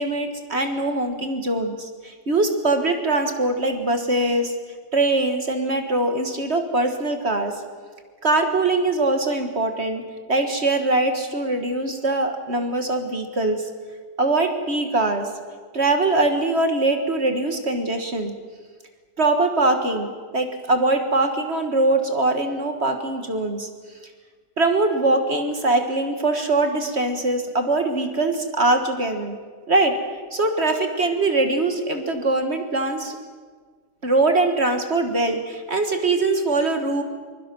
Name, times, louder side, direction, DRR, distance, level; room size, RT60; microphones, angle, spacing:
voice 1, 0.0-4.5 4.9-7.5 8.2-10.0 10.3-13.7 14.2-15.3 15.7-18.3 19.2-23.7 24.6-29.4 29.7-30.0 30.3-33.2 34.0-37.0, right 2 dB, 40° right, 6 dB, 1.8 m, -22 dB
23.5 x 22.0 x 6.2 m, 1.6 s
omnidirectional pair, 1.8 m